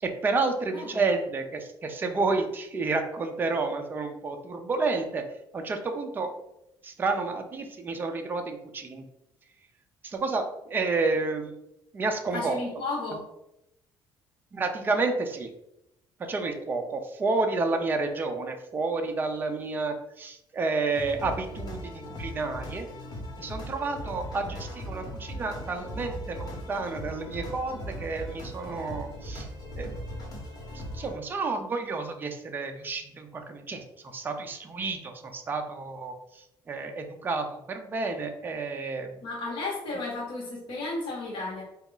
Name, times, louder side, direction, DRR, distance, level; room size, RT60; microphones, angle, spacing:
voice 1, 0.0-5.2 5.5-6.3 6.8-9.0 10.0-11.5 11.9-12.6 13.1-13.2 14.5-15.5 16.2-22.9 23.4-29.5 29.8-29.9 30.7-39.2, right 3 dB, 20° right, 4 dB, 0.4 m, -30 dB
voice 2, 12.3-13.2 39.2-41.6, left 3 dB, 65° left, -4 dB, 1.0 m, -33 dB
sound 1, 20.9-31.1, equal, 45° left, 1.2 m, -39 dB
4.0 x 2.3 x 3.7 m, 0.84 s
cardioid pair, 155°, 9 cm